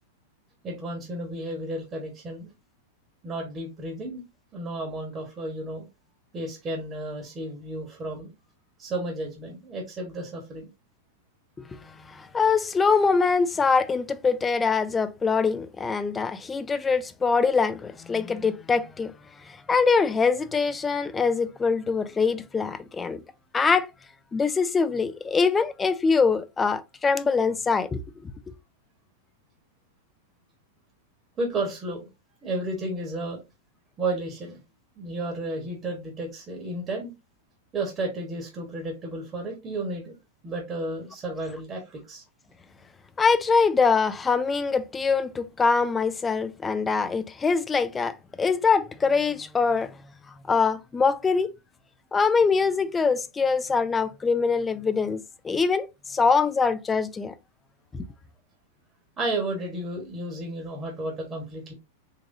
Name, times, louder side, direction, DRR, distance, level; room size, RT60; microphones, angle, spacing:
voice 1, 0.6-2.5 3.2-4.2 4.5-5.9 6.3-8.3 8.8-10.7 31.4-32.1 32.4-33.4 34.0-34.6 35.0-37.1 37.7-40.2 40.4-42.2 59.2-61.7, right 2 dB, 30° right, 1.2 m, -32 dB
voice 2, 12.1-19.1 19.5-23.2 23.5-23.9 24.3-28.3 43.2-49.9 50.5-51.5 52.1-57.3 57.9-58.0, left 5 dB, 15° left, 0.4 m, -23 dB
3.7 x 2.9 x 2.6 m
hypercardioid pair, 105°, 0 cm